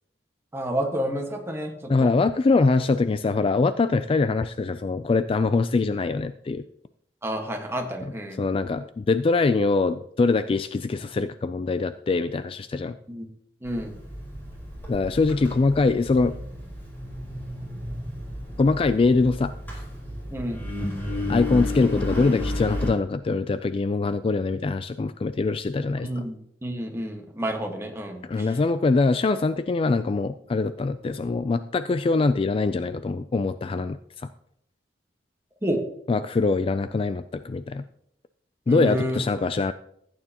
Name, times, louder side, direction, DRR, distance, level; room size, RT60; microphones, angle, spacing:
voice 1, 0.5-2.1 7.2-8.4 13.1-13.2 13.6-14.0 20.3-20.6 26.0-28.5 35.6-35.8 38.7-39.2, equal, 15° right, 2 dB, 1.4 m, -30 dB
voice 2, 1.9-6.6 8.4-12.9 14.9-16.3 18.6-19.5 21.3-26.2 28.2-34.3 36.1-37.8 38.7-39.7, left 3 dB, 30° left, 12 dB, 0.3 m, -23 dB
Engine, 13.6-22.9, left 1 dB, 10° left, 4.1 m, -33 dB
15.0 x 9.0 x 2.9 m, 0.71 s
head